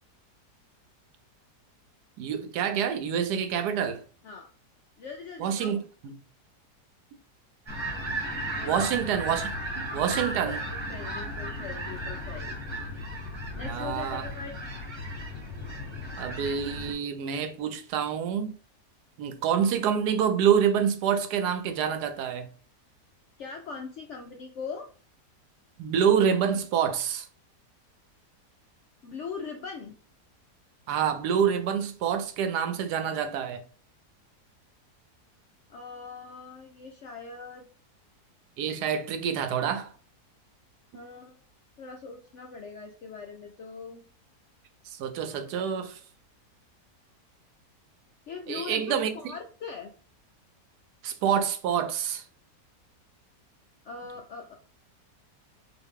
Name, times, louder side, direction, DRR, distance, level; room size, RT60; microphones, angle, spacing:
voice 1, 2.2-4.0 5.4-5.8 6.0-6.1 8.6-10.6 13.6-14.3 16.2-18.6 19.2-22.5 25.8-27.3 30.9-33.6 38.6-39.9 44.9-46.0 48.5-49.1 51.0-52.2, right 8 dB, 80° right, 1.2 m, -27 dB
voice 2, 5.0-5.8 8.6-9.0 10.1-12.5 13.6-14.5 23.4-24.9 29.0-30.0 35.7-37.7 40.9-41.4 41.8-44.0 48.3-49.9 53.8-54.5, left 4 dB, 70° left, 0.7 m, -40 dB
sound 1, 7.7-16.9, equal, 20° right, 1.0 m, -35 dB
3.9 x 2.6 x 3.5 m
omnidirectional pair, 1.7 m